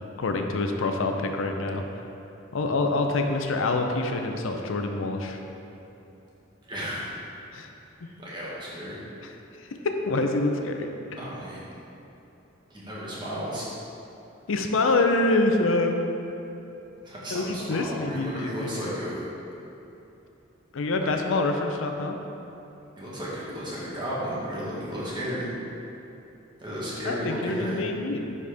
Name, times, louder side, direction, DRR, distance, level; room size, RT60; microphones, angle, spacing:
voice 1, 0.2-1.8 2.5-5.4 7.5-7.7 9.8-10.9 14.5-15.9 17.3-18.9 20.7-22.2 27.1-28.4, left 2 dB, 80° left, 4 dB, 0.5 m, -26 dB
voice 2, 6.7-7.0 8.1-9.0 11.2-11.7 12.7-13.7 17.0-19.2 23.0-25.5 26.6-27.9, equal, 25° right, -7 dB, 1.5 m, -33 dB
9.8 x 4.2 x 3.5 m, 2.9 s
head